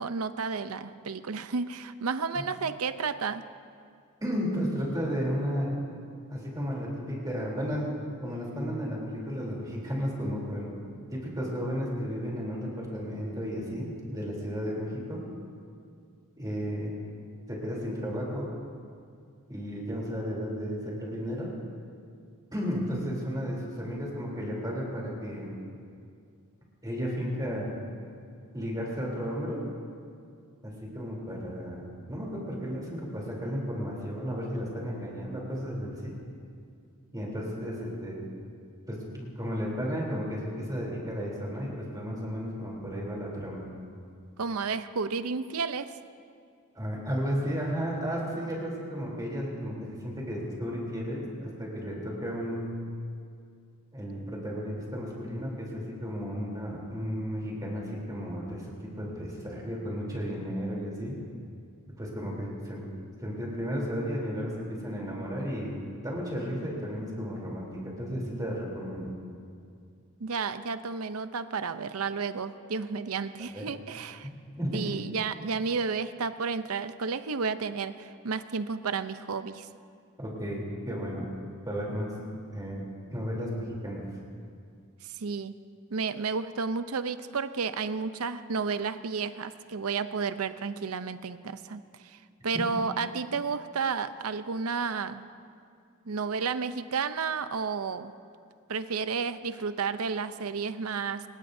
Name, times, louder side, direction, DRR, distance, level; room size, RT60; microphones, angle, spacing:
voice 1, 0.0-3.5 44.4-45.9 70.2-74.3 74.7-79.7 85.0-85.5 85.9-92.2 92.4-95.3 96.1-98.1 98.7-101.2, right 5 dB, 80° right, 11 dB, 0.7 m, -32 dB
voice 2, 4.2-5.7 6.3-7.9 8.2-10.7 11.1-15.3 16.4-16.9 17.5-18.5 19.5-21.5 22.5-25.5 26.8-27.8 28.5-29.6 30.6-31.8 32.1-36.2 37.1-38.2 38.9-43.7 46.7-52.8 53.9-61.2 62.0-62.8 63.2-65.7 66.0-69.1 73.5-73.6 74.2-74.8 80.2-81.3 81.7-82.1 82.5-82.8 83.1-84.1 92.5-92.6, equal, 20° right, -3 dB, 3.4 m, -33 dB
25.5 x 20.5 x 2.7 m, 2.3 s
head